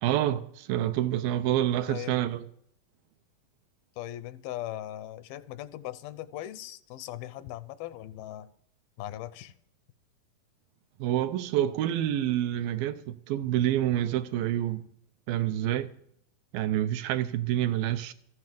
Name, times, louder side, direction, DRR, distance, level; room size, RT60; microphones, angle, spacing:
voice 1, 0.0-2.5 11.0-14.9 15.3-15.9 16.5-18.1, right 12 dB, 80° right, 2.3 m, -27 dB
voice 2, 4.0-8.5 9.0-9.5, left 13 dB, 80° left, 2.5 m, -39 dB
14.0 x 9.7 x 7.6 m
omnidirectional pair, 4.3 m